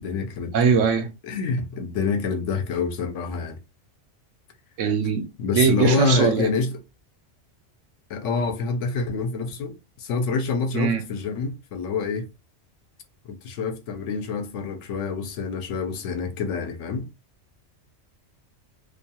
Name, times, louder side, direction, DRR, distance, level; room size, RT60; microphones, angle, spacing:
voice 1, 0.0-0.8 1.2-3.6 5.4-6.7 8.1-12.3 13.3-17.1, left 4 dB, 75° left, 0.9 m, -27 dB
voice 2, 0.5-1.1 4.8-5.3 5.5-6.5 10.7-11.0, right 6 dB, 80° right, 1.0 m, -21 dB
2.5 x 2.2 x 2.8 m
omnidirectional pair, 1.3 m